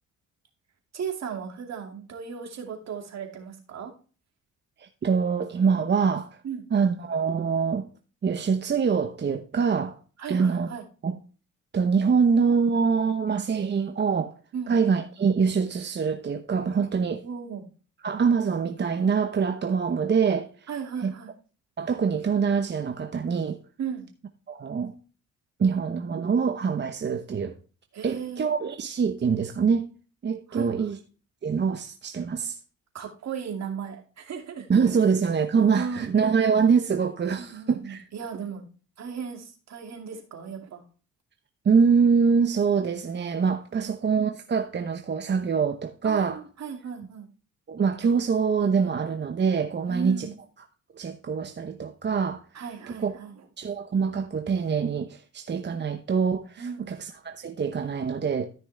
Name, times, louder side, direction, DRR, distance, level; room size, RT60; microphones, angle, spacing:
voice 1, 0.9-3.9 6.4-6.7 10.2-10.9 14.5-14.7 17.2-17.7 20.7-21.3 23.8-24.1 27.9-28.5 30.5-31.0 32.9-34.7 35.7-36.1 37.4-38.6 39.0-40.8 43.7-43.9 46.0-47.3 49.9-50.3 52.5-53.5 56.6-56.9, right 6 dB, 60° right, 2.5 m, -36 dB
voice 2, 4.8-6.3 6.7-7.9 8.2-10.0 10.3-10.7 11.0-11.2 11.7-14.3 14.7-17.2 18.0-20.5 21.0-21.1 21.8-23.6 24.5-24.9 25.6-27.5 28.0-29.9 30.2-31.0 31.4-32.6 34.7-38.0 41.6-46.4 47.7-50.3 50.9-52.4 53.0-53.1 53.6-58.5, right 6 dB, 35° right, 0.9 m, -24 dB
13.5 x 6.1 x 3.3 m
cardioid pair, 90°, 30 cm